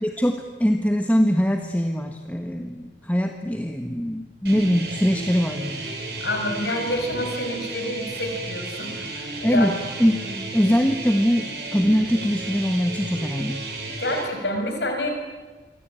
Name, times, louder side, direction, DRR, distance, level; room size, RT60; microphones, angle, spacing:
voice 1, 0.0-5.8 9.4-9.7 10.0-10.2 10.5-13.6, equal, 10° left, 4 dB, 1.3 m, -22 dB
sound 1, 4.4-14.2, right 2 dB, 65° right, 6.7 m, -33 dB
voice 2, 6.2-9.8 10.2-10.3 14.0-15.1, left 1 dB, 75° left, 4 dB, 5.8 m, -28 dB
27.5 x 24.5 x 9.0 m, 1.3 s
head